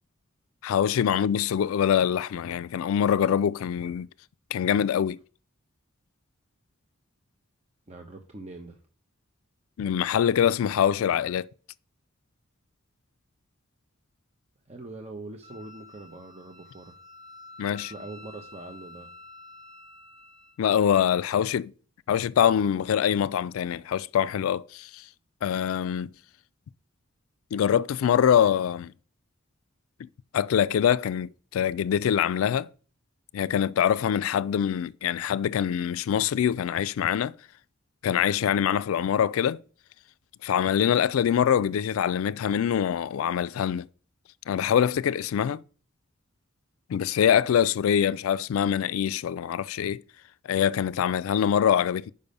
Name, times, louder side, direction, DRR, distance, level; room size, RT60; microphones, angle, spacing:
voice 1, 0.6-4.1 4.5-5.2 9.8-11.5 17.6-17.9 20.6-21.7 22.1-25.0 25.4-26.1 27.5-28.9 30.0-30.1 30.3-32.7 33.3-37.3 38.0-39.6 40.4-43.9 44.5-45.6 46.9-50.0 50.5-52.1, left 8 dB, 85° left, 0.3 m, -24 dB
voice 2, 7.9-8.8 14.7-17.0 17.7-19.1, right 2 dB, 30° right, 0.7 m, -43 dB
Wind instrument woodwind instrument, 15.4-20.6, left 2 dB, 60° right, 4.5 m, -49 dB
6.8 x 5.2 x 5.3 m
head